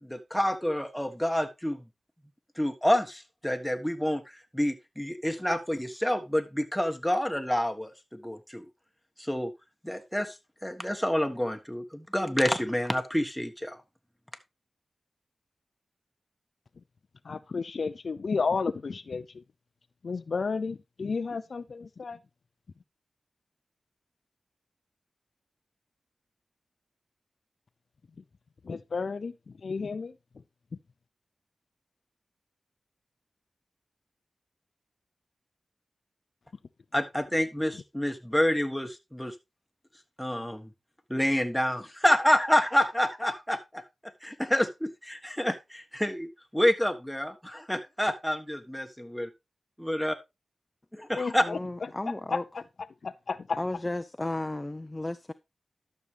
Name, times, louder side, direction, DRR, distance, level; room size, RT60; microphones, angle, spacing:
voice 1, 0.0-1.8 2.6-4.2 4.5-8.6 9.2-9.5 9.8-10.3 10.6-13.8 36.9-39.3 40.2-40.7 41.1-43.8 44.2-46.3 46.5-49.2 49.8-50.2 51.1-51.4, equal, 5° left, 1.5 m, -28 dB
voice 2, 17.3-19.2 20.0-22.2 28.7-29.3 29.6-30.1 51.2-51.6 52.3-52.4 53.0-53.6, left 4 dB, 70° left, 0.5 m, -32 dB
voice 3, 51.4-52.4 53.6-55.3, left 2 dB, 25° left, 0.6 m, -34 dB
12.0 x 6.5 x 3.3 m
cardioid pair, 55°, 0 cm